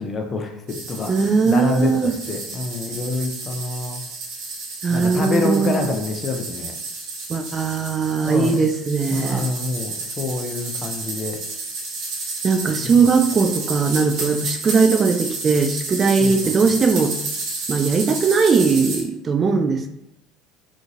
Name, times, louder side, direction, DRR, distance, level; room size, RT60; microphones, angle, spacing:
voice 1, 0.0-4.0 4.9-6.7 8.2-8.6 9.1-11.4 12.8-13.0 16.2-16.6, left 3 dB, 30° left, 3 dB, 0.5 m, -27 dB
sound 1, 0.7-19.0, right 3 dB, 60° right, 1.0 m, -31 dB
voice 2, 1.1-2.1 4.8-5.9 7.3-9.5 12.4-17.1 17.7-19.9, right 5 dB, 35° right, 6 dB, 0.4 m, -19 dB
2.9 x 2.4 x 2.6 m, 0.82 s
hypercardioid pair, 70°, 0 cm